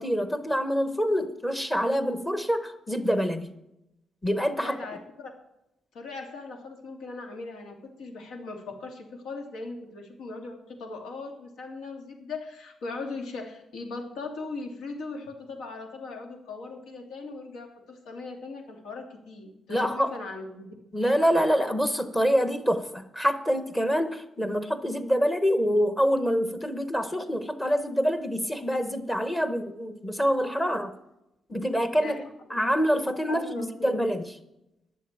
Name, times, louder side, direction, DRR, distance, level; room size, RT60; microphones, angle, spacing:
voice 1, 0.0-3.5 4.2-4.7 19.7-20.1 20.9-30.9 31.5-32.2 32.5-34.2, equal, 10° left, 9 dB, 0.9 m, -26 dB
voice 2, 4.6-5.3 5.9-20.7 32.0-32.2 33.3-34.1, left 3 dB, 85° left, 2 dB, 2.5 m, -39 dB
12.0 x 7.1 x 8.9 m, 0.88 s
cardioid pair, 160°, 0 cm